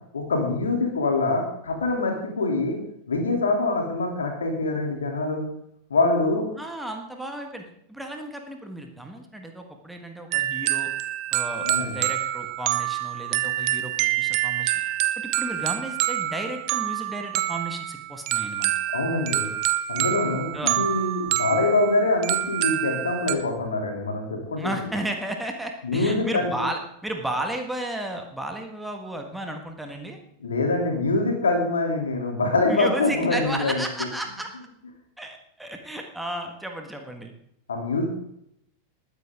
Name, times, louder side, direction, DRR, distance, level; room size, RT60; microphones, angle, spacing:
voice 1, 0.1-2.8 3.1-5.4 5.9-6.5 11.6-12.0 18.9-19.5 19.9-24.7 25.8-26.5 30.4-33.8 37.7-38.1, left 2 dB, 70° left, 2 dB, 3.3 m, -24 dB
voice 2, 6.6-10.9 11.3-14.7 15.2-18.7 20.5-20.8 24.6-30.2 32.7-34.5 35.2-37.3, right 1 dB, 5° right, 3 dB, 1.8 m, -33 dB
sound 1, 10.3-23.3, right 15 dB, 45° right, 0.8 m, -27 dB
20.0 x 9.8 x 3.8 m, 0.73 s
figure-of-eight pair, 90°, 0 cm